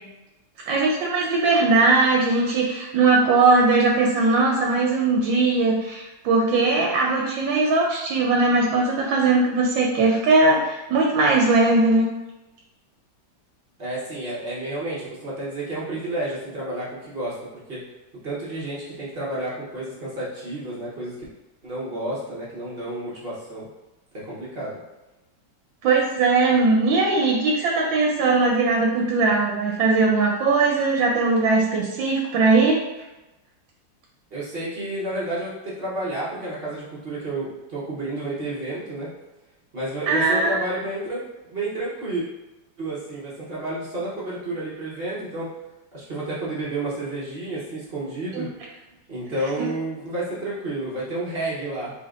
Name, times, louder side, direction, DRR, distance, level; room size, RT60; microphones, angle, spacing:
voice 1, 0.7-12.1 25.8-32.8 40.1-40.6 48.3-48.5, right 3 dB, 80° right, 0 dB, 1.3 m, -20 dB
voice 2, 13.8-17.4 17.7-17.8 18.2-21.1 21.6-23.7 24.1-24.8 34.3-39.1 39.7-41.2 41.5-42.2 42.8-45.5 45.9-48.5 49.1-51.9, right 2 dB, 45° right, -7 dB, 0.8 m, -30 dB
4.2 x 3.3 x 2.4 m, 1.0 s
omnidirectional pair, 2.1 m